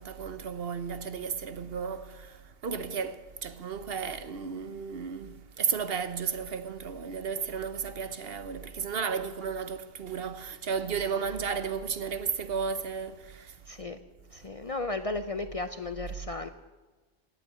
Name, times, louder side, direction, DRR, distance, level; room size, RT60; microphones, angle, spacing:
voice 1, 0.0-13.6, right 6 dB, 60° right, 1.0 m, -34 dB
voice 2, 13.7-14.0 14.3-16.5, left 3 dB, 40° left, 0.6 m, -34 dB
17.0 x 8.5 x 9.2 m
omnidirectional pair, 1.2 m